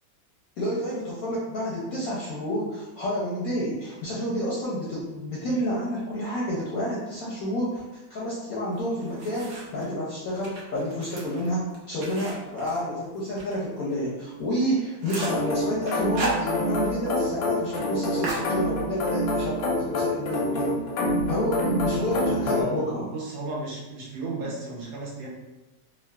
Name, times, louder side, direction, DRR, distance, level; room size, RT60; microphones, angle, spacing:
voice 1, 0.6-7.8 8.1-20.8 21.3-23.1, equal, 70° left, -6 dB, 0.8 m, -29 dB
sound 1, 8.7-9.9 10.3-13.6 13.9-14.0 14.4-14.5 14.8-15.5 15.9-17.0 17.2-17.3 17.6-17.8 18.2-19.1, right 3 dB, 65° right, 0.8 m, -35 dB
sound 2, 15.2-22.6, left 1 dB, 90° left, 1.4 m, -27 dB
voice 2, 22.4-22.8 23.1-25.3, right 2 dB, 85° right, -4 dB, 1.5 m, -34 dB
3.6 x 2.0 x 2.2 m, 1.0 s
omnidirectional pair, 2.0 m